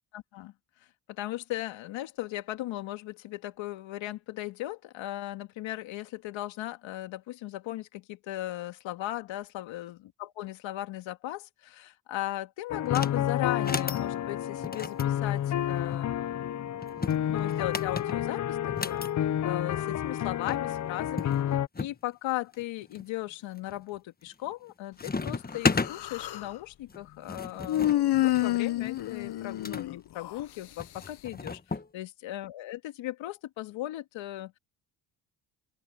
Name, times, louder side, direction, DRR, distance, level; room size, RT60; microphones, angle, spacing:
voice 1, 0.1-0.5 1.1-16.8 17.3-18.6 18.8-19.1 19.4-21.4 21.8-34.5, left 15 dB, 80° left, 2.2 m, -37 dB
sound 1, 12.7-21.7, left 10 dB, 40° left, 0.6 m, -30 dB
sound 2, 12.8-13.2 13.5-14.0 14.6-16.0 16.8-19.1 20.2-20.3 20.5-20.6 21.2-22.0 22.5-23.0 23.6-24.0 24.3-24.7 25.0-25.9 26.9-29.9 30.8-31.9, left 4 dB, 20° left, 1.3 m, -34 dB
Human voice, 25.5-26.5 27.7-30.4, left 14 dB, 60° left, 1.0 m, -28 dB
open air
supercardioid pair, 70°, 45 cm